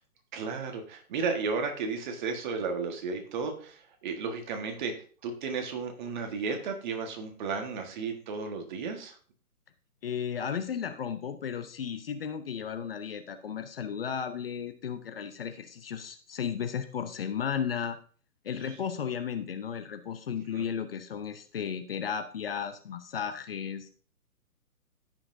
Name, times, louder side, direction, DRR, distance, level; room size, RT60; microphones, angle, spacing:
voice 1, 0.3-4.9 5.2-9.1 20.5-20.7, right 4 dB, 30° right, 4 dB, 1.5 m, -33 dB
voice 2, 10.0-18.0 18.4-23.9, left 7 dB, 40° left, 9 dB, 0.8 m, -34 dB
14.0 x 5.8 x 2.6 m, 0.43 s
hypercardioid pair, 140°, 45 cm